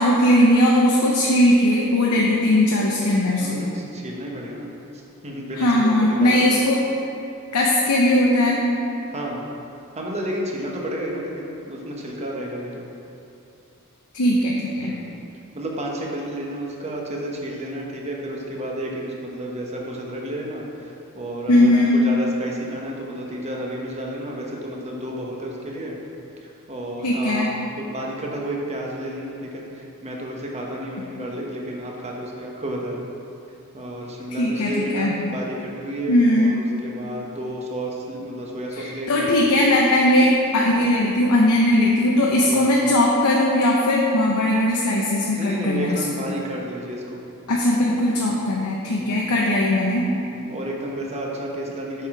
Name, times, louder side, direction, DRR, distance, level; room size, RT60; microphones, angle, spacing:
voice 1, 0.0-3.7 5.6-6.8 7.5-8.6 14.1-14.9 21.5-22.0 27.0-27.5 34.4-35.1 36.1-36.5 38.8-46.0 47.5-50.1, left 1 dB, 85° left, -3 dB, 0.8 m, -19 dB
voice 2, 3.4-6.5 9.1-9.4 10.0-12.9 14.8-15.0 15.5-26.0 26.4-27.5 27.8-33.1 33.7-36.6 36.8-39.3 42.5-42.7 45.4-47.2 48.2-48.3 48.9-49.2 50.3-52.1, right 1 dB, 30° right, -2 dB, 1.1 m, -31 dB
7.8 x 4.9 x 4.9 m, 2.7 s
head